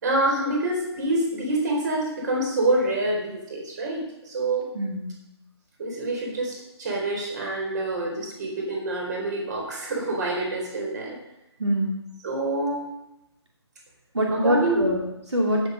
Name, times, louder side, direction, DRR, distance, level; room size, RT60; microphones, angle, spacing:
voice 1, 0.0-4.7 5.8-11.2 12.2-12.9 14.3-14.8, right 2 dB, 40° right, -1 dB, 4.4 m, -26 dB
voice 2, 4.7-5.1 11.6-11.9 14.1-15.6, equal, 70° right, -1 dB, 2.5 m, -24 dB
15.5 x 7.5 x 5.3 m, 0.89 s
figure-of-eight pair, 140°, 15 cm